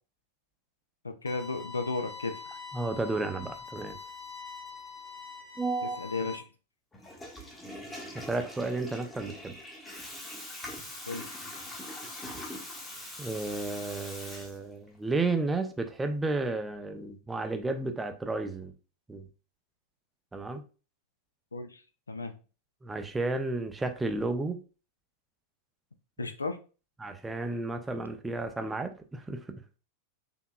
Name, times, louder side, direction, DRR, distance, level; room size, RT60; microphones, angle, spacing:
voice 1, 1.0-2.3 5.8-6.4 11.1-11.3 21.5-21.8 22.1-22.3 26.2-26.6, left 3 dB, 75° left, 8 dB, 0.4 m, -34 dB
sound 1, 1.3-6.4, left 5 dB, 35° left, 0.8 m, -44 dB
voice 2, 2.7-4.0 5.6-6.0 8.1-9.5 13.2-18.7 19.1-19.3 20.3-20.6 22.8-24.6 27.0-29.6, right 3 dB, 10° right, 6 dB, 0.5 m, -32 dB
Water tap faucet / Toilet flush, 6.9-15.0, left 1 dB, 15° left, 1.0 m, -43 dB
4.4 x 2.8 x 2.3 m, 0.35 s
figure-of-eight pair, 90°, 0 cm